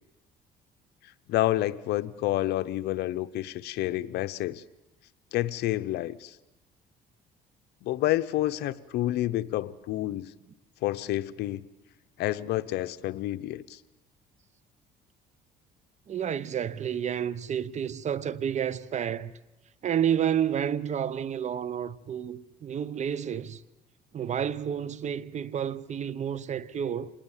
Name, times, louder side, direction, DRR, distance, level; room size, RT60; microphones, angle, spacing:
voice 1, 1.3-4.6 5.3-6.4 7.8-10.3 10.8-11.6 12.2-13.8, left 15 dB, 80° left, 0.8 m, -29 dB
voice 2, 16.1-19.3 19.8-23.6 24.1-27.1, right 9 dB, 45° right, 0.8 m, -30 dB
26.0 x 19.0 x 7.3 m
cardioid pair, 110°, 17 cm